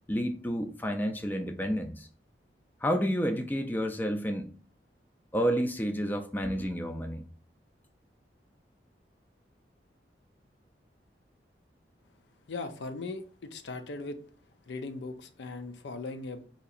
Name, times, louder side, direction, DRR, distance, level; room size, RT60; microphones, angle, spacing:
voice 1, 0.1-2.1 2.8-4.5 5.3-7.2, equal, 10° left, 0.4 m, -30 dB
voice 2, 12.5-14.2 14.7-16.5, left 3 dB, 80° left, 0.5 m, -39 dB
4.2 x 2.8 x 2.4 m
head